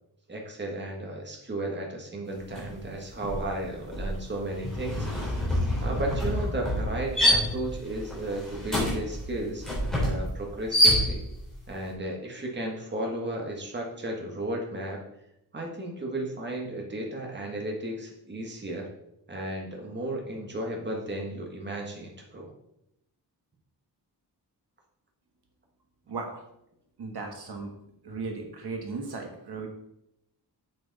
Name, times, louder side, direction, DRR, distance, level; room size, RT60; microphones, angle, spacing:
voice 1, 0.3-5.4 5.8-9.7 10.0-11.2 11.7-15.0 15.5-18.9 19.3-22.5, right 1 dB, 25° right, 0 dB, 1.6 m, -34 dB
sound 1, 2.5-2.8 3.1-11.5, equal, ahead, 3.7 m, -27 dB
voice 2, 26.1-26.4 27.0-27.7 28.0-29.7, right 3 dB, 65° right, 2 dB, 1.5 m, -36 dB
7.7 x 7.7 x 4.1 m, 0.80 s
wide cardioid pair, 170°, 41 cm